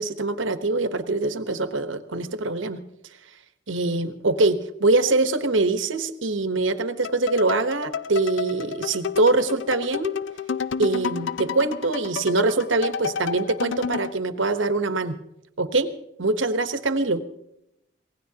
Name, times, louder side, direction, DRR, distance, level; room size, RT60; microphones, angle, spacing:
voice 1, 0.0-2.8 3.7-10.1 10.8-15.2 15.6-15.9 16.2-17.2, right 2 dB, 75° right, 10 dB, 1.0 m, -23 dB
sound 1, 7.0-14.2, left 6 dB, 70° left, 0.5 m, -31 dB
26.0 x 17.0 x 2.8 m, 0.84 s
head